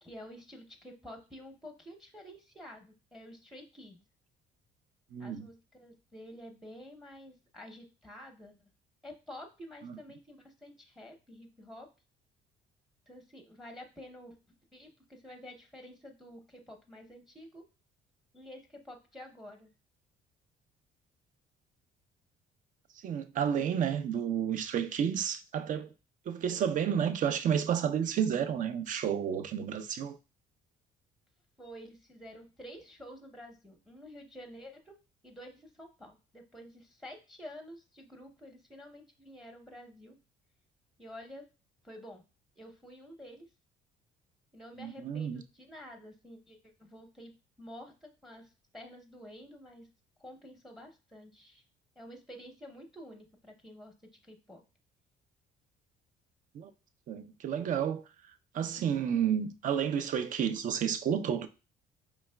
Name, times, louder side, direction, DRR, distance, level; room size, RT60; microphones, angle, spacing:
voice 1, 0.0-4.0 5.2-8.5 9.0-11.9 13.1-14.4 14.7-17.6 18.3-19.7 31.6-34.9 35.2-40.2 41.0-41.4 41.8-42.2 42.6-43.5 44.5-47.3 47.6-49.9 50.2-51.6 52.0-53.9 54.2-54.6, equal, ahead, 0.7 m, -49 dB
voice 2, 5.1-5.5 9.8-9.9 23.0-25.9 26.3-30.2 44.8-45.4 56.5-56.7 57.1-58.0 58.5-61.5, right 8 dB, 50° right, 0.5 m, -31 dB
4.6 x 3.1 x 2.2 m
cardioid pair, 110°, 17 cm